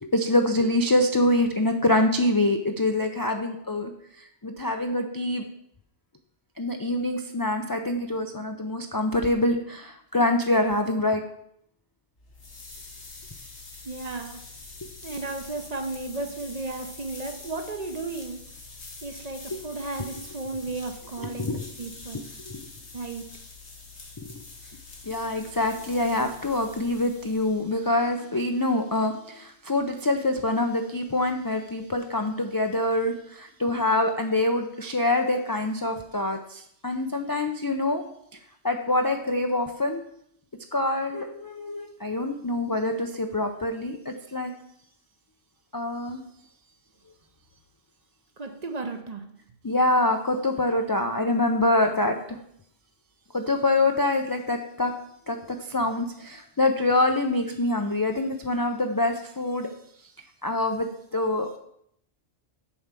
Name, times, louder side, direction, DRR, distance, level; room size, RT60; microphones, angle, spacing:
voice 1, 0.0-3.9 4.2-5.4 6.6-11.2 14.8-14.9 19.5-19.6 21.2-21.6 22.5-22.6 24.2-24.3 25.1-38.0 38.6-40.0 40.7-44.5 45.7-46.2 49.6-52.4 53.3-54.9 55.3-59.7 60.4-61.6, left 2 dB, 35° left, 4 dB, 0.3 m, -25 dB
sound 1, 12.2-27.9, left 3 dB, 90° left, 1.9 m, -45 dB
voice 2, 13.8-14.4 15.0-18.4 19.0-22.3 22.9-23.4 48.4-49.3, right 3 dB, 40° right, 5 dB, 0.8 m, -34 dB
7.1 x 4.6 x 6.7 m, 0.71 s
omnidirectional pair, 1.1 m